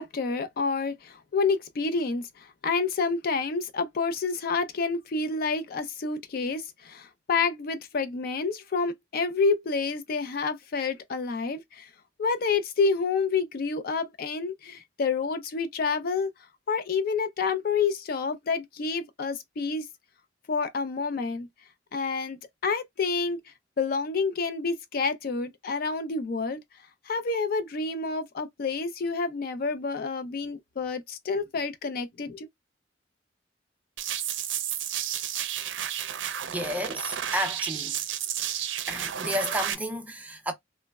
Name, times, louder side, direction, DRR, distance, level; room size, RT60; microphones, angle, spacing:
voice 1, 0.0-11.9 12.2-16.3 16.7-19.9 20.5-21.5 21.9-23.4 23.8-26.6 27.1-32.5, left 4 dB, 55° left, 0.4 m, -28 dB
sound 1, 34.0-39.7, right 10 dB, 90° right, 0.4 m, -32 dB
voice 2, 36.5-38.0 38.9-40.5, equal, 10° right, 0.5 m, -31 dB
3.2 x 2.0 x 2.2 m
head